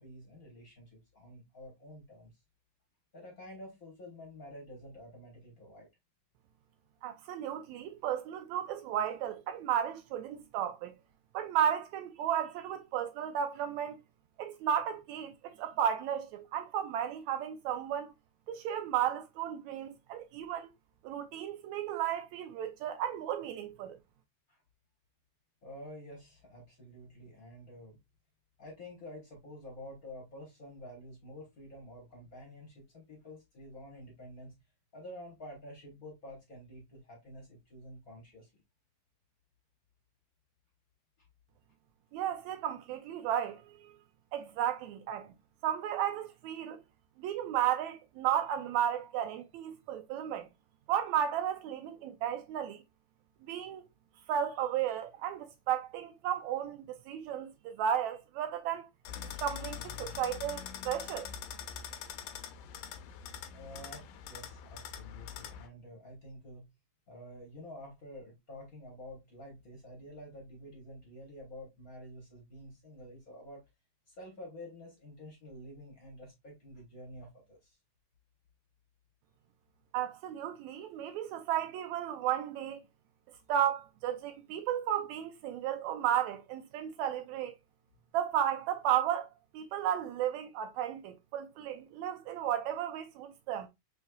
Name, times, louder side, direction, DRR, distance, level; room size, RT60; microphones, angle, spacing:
voice 1, 0.0-2.3 3.1-5.9 24.5-24.6 25.6-28.0 28.6-34.5 34.9-38.5 63.5-66.7 67.1-73.6 74.1-77.8, left 1 dB, 45° left, 1.2 m, -49 dB
voice 2, 7.0-10.9 11.3-14.0 14.4-18.1 18.5-20.7 21.0-24.0 42.1-43.9 44.3-45.3 45.6-46.8 47.2-50.5 50.9-52.8 53.5-53.8 54.3-58.9 59.4-61.3 79.9-82.8 83.5-87.6 88.1-89.3 89.5-93.7, right 10 dB, 80° right, 1.7 m, -34 dB
sound 1, 59.0-65.7, left 8 dB, 85° left, 2.2 m, -43 dB
5.5 x 3.3 x 2.3 m
omnidirectional pair, 3.6 m